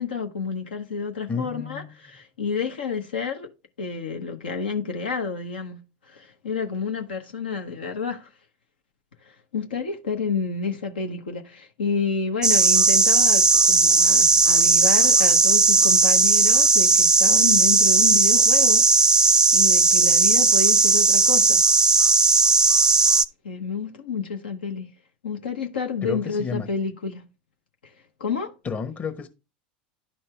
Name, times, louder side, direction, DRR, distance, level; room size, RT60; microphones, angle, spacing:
voice 1, 0.0-3.5 3.8-8.3 9.2-18.8 19.1-21.6 23.4-24.9 25.2-27.2 27.8-27.9 28.2-28.5, left 5 dB, 80° left, 1.0 m, -30 dB
voice 2, 1.3-1.9 26.0-26.7 28.6-29.3, left 5 dB, 30° left, 1.1 m, -31 dB
sound 1, 12.4-23.3, right 4 dB, 15° right, 0.4 m, -17 dB
11.0 x 4.4 x 3.3 m
hypercardioid pair, 85°, 5 cm